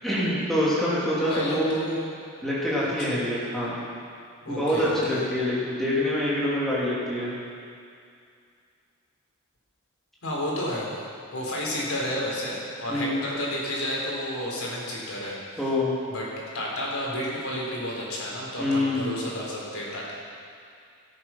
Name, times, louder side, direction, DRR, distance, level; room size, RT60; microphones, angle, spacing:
voice 1, 0.0-1.8 2.4-3.7 4.5-7.3 12.9-13.2 15.6-15.9 18.6-19.1, left 1 dB, ahead, -9 dB, 2.9 m, -25 dB
voice 2, 1.2-2.0 2.8-3.2 4.4-5.2 10.2-10.9 11.3-15.4 16.1-16.3 16.5-20.1, left 1 dB, 80° left, -4 dB, 3.8 m, -31 dB
17.5 x 8.6 x 5.9 m, 2.3 s
head